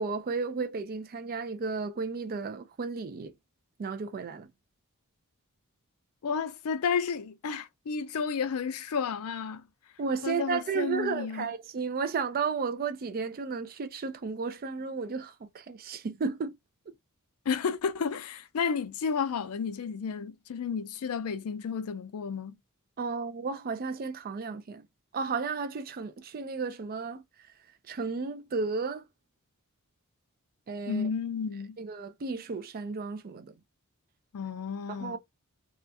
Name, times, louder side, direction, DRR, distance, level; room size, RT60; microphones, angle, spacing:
voice 1, 0.0-3.3 3.8-4.5 10.0-16.6 23.0-24.8 25.1-27.2 27.9-29.0 30.7-31.1 31.8-33.6 34.9-35.2, right 4 dB, 40° right, 0.4 m, -33 dB
voice 2, 6.2-9.7 10.2-11.5 17.5-22.6 30.9-31.8 34.3-35.2, left 6 dB, 75° left, 0.4 m, -32 dB
2.4 x 2.2 x 2.6 m
head